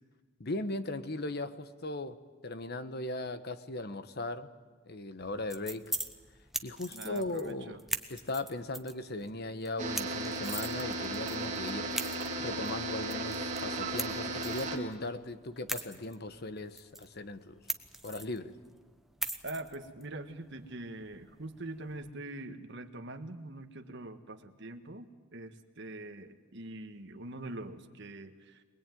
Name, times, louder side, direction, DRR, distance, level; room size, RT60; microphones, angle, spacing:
voice 1, 0.4-2.2 2.4-4.5 4.9-5.9 6.6-7.8 8.1-11.9 12.4-17.6 18.0-18.6, left 2 dB, 55° left, 11 dB, 1.2 m, -38 dB
sound 1, 5.2-22.1, right 1 dB, ahead, 1.1 m, -43 dB
voice 2, 6.9-7.8 19.4-28.6, right 2 dB, 65° right, 6 dB, 1.7 m, -43 dB
sound 2, 9.8-14.8, right 2 dB, 40° right, 2.6 m, -35 dB
24.5 x 20.5 x 9.3 m, 1.4 s
head